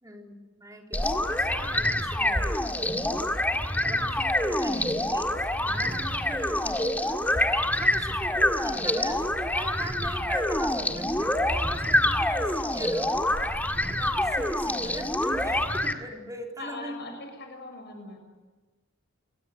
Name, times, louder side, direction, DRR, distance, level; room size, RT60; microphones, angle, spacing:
voice 1, 0.0-2.7 3.8-17.0, right 1 dB, 20° right, 1 dB, 3.7 m, -41 dB
sound 1, 0.9-15.9, left 1 dB, 10° left, 1.9 m, -26 dB
voice 2, 16.6-18.2, left 3 dB, 60° left, 5 dB, 6.7 m, -40 dB
27.0 x 22.0 x 7.8 m, 1.2 s
head